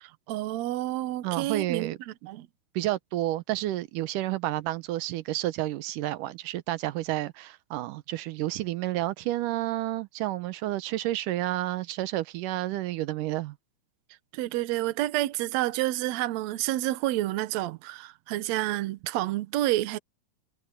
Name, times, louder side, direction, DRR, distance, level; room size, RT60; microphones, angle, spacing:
voice 1, 0.0-2.5 14.3-20.0, right 15 dB, 70° right, 2.0 m, -29 dB
voice 2, 1.2-2.0 2.8-13.6, right 15 dB, 85° right, 2.4 m, -30 dB
omnidirectional pair, 3.6 m